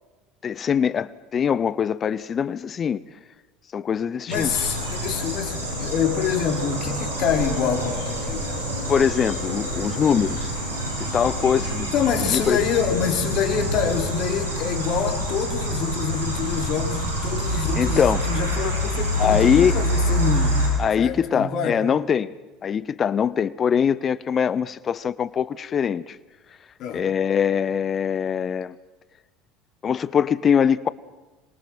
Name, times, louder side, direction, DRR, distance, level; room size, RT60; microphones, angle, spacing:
voice 1, 0.4-3.0 3.7-4.5 8.9-10.5 11.1-11.9 12.3-12.6 17.7-18.3 19.2-19.8 20.8-22.3 22.6-26.2 26.9-28.8 29.8-30.9, left 7 dB, 35° left, 0.8 m, -22 dB
voice 2, 4.3-8.6 11.9-20.7 21.0-21.8 26.8-27.0, left 7 dB, 50° left, 3.9 m, -26 dB
sound 1, 4.3-20.7, equal, 90° right, 7.2 m, -27 dB
26.0 x 23.0 x 6.2 m
hypercardioid pair, 75°, 0 cm